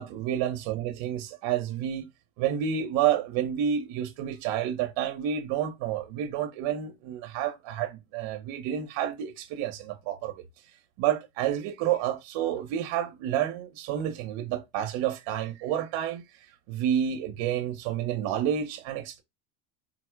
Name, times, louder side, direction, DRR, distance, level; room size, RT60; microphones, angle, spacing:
voice 1, 0.0-2.0 2.4-10.3 11.0-16.2 16.7-19.2, right 10 dB, 70° right, 0.8 m, -29 dB
4.2 x 2.0 x 4.4 m
cardioid pair, 130°, 47 cm